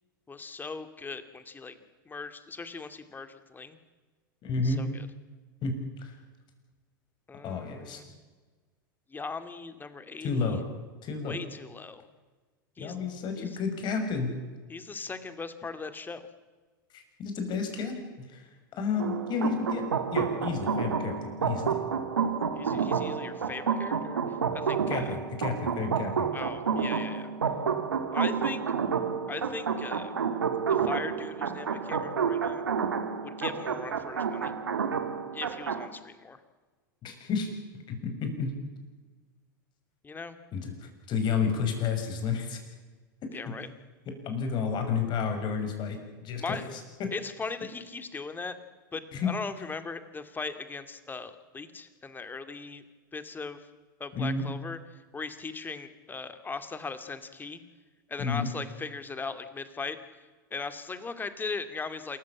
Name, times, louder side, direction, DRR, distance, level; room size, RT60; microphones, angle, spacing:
voice 1, 0.3-1.8 2.1-3.8 4.6-5.1 7.3-8.1 9.1-10.6 11.2-12.0 12.8-13.0 13.4-13.6 14.7-16.3 22.6-25.2 26.3-27.3 28.1-28.6 29.3-30.1 30.7-32.6 33.2-34.5 35.3-36.4 40.0-40.4 43.3-43.7 46.4-46.7 47.1-48.6 48.9-52.8 53.1-53.7 54.0-57.6 58.1-60.0 60.5-62.2, left 4 dB, 15° left, 10 dB, 2.3 m, -39 dB
voice 2, 4.4-4.9 5.6-6.2 7.4-8.0 10.2-10.6 11.0-11.4 12.8-14.3 16.9-21.2 21.4-21.7 24.9-26.3 37.0-37.5 37.9-38.5 40.5-42.6 43.2-43.3 44.2-46.0 46.2-47.1 49.1-49.3 54.1-54.5 58.2-58.5, left 5 dB, 40° left, 5 dB, 6.5 m, -31 dB
sound 1, 19.0-35.9, right 6 dB, 85° right, 1.9 m, -30 dB
27.5 x 14.5 x 8.8 m, 1.3 s
hypercardioid pair, 95°, 12 cm